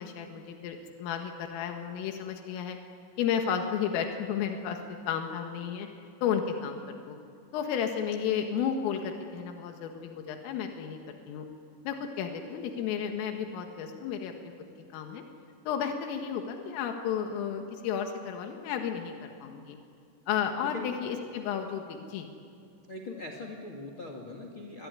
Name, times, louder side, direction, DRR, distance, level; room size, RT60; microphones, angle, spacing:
voice 1, 0.0-2.8 3.2-4.8 5.1-5.9 6.2-7.2 7.5-11.5 11.9-14.3 14.9-15.2 15.7-19.8 20.3-22.3, left 8 dB, 90° left, 4 dB, 4.3 m, -32 dB
voice 2, 20.6-21.0 22.9-24.9, left 2 dB, 40° left, 3 dB, 2.0 m, -41 dB
27.0 x 22.0 x 9.8 m, 2.4 s
omnidirectional pair, 5.7 m